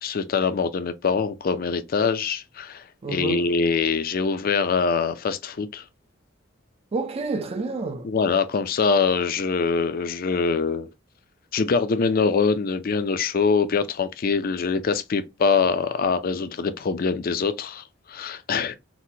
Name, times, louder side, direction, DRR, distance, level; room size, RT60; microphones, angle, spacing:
voice 1, 0.0-5.8 8.0-10.9 11.5-18.7, left 5 dB, 45° left, 0.4 m, -24 dB
voice 2, 3.0-3.5 6.9-8.1, right 3 dB, 30° right, 0.4 m, -29 dB
4.1 x 2.1 x 2.7 m
head